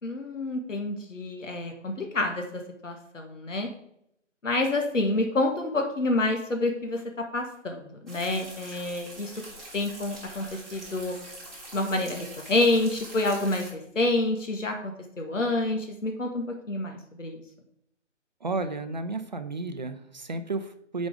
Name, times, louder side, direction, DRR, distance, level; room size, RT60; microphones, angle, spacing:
voice 1, 0.0-3.7 4.4-7.0 7.3-9.4 9.7-11.2 11.7-17.4, left 2 dB, 80° left, 4 dB, 1.5 m, -28 dB
sound 1, 8.1-13.7, right 1 dB, ahead, 1.8 m, -44 dB
voice 2, 18.4-21.1, right 3 dB, 40° right, 9 dB, 0.6 m, -32 dB
8.7 x 5.2 x 4.9 m, 0.76 s
figure-of-eight pair, 155°, 37 cm